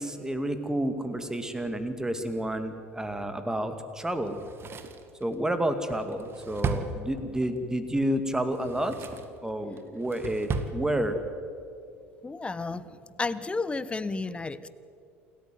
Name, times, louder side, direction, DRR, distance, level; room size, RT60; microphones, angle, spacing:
voice 1, 0.0-4.4 5.2-8.9 9.4-11.1, right 1 dB, 10° right, 9 dB, 2.4 m, -30 dB
Drawer open or close, 4.3-7.6 8.4-9.4 9.8-10.8 11.1-11.2, right 5 dB, 35° right, 2.0 m, -35 dB
voice 2, 12.2-12.8 13.2-14.7, left 3 dB, 15° left, 16 dB, 1.1 m, -32 dB
28.5 x 14.0 x 9.4 m, 2.6 s
figure-of-eight pair, 70°, 7 cm